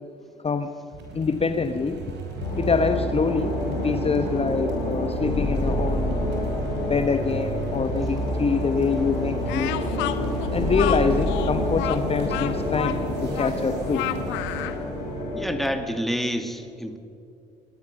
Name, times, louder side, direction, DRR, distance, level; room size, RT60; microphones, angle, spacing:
sound 1, 0.9-16.3, right 3 dB, 60° right, 5.3 m, -35 dB
voice 1, 1.1-2.0 2.6-6.2 6.8-9.8 10.5-14.1, left 5 dB, 30° left, 8 dB, 1.3 m, -25 dB
sound 2, 2.4-15.7, left 1 dB, 85° left, 5.0 m, -28 dB
Speech, 9.5-14.8, left 14 dB, 70° left, 1.3 m, -31 dB
voice 2, 15.4-17.0, equal, ahead, 7 dB, 2.6 m, -28 dB
22.5 x 19.5 x 6.7 m, 2.6 s
hypercardioid pair, 55°, 20 cm